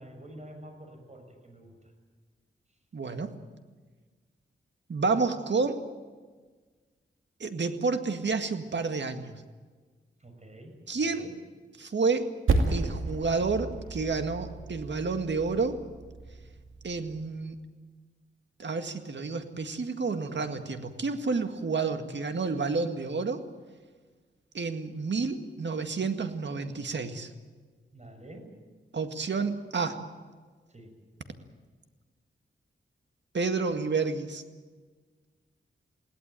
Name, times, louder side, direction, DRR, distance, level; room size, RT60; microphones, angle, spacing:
voice 1, 0.0-1.8 10.2-11.3 27.9-28.6 30.7-31.0, right 1 dB, 35° right, 4 dB, 6.4 m, -48 dB
voice 2, 2.9-3.3 4.9-5.8 7.4-9.3 10.9-11.3 11.8-12.2 12.7-15.8 16.8-17.6 18.6-23.4 24.5-27.3 28.9-30.0 33.3-34.4, right 4 dB, 65° right, 7 dB, 2.0 m, -30 dB
Percussion, 12.5-17.3, right 3 dB, 85° right, 2.4 m, -32 dB
21.5 x 17.5 x 9.1 m, 1.4 s
wide cardioid pair, 80°, 20 cm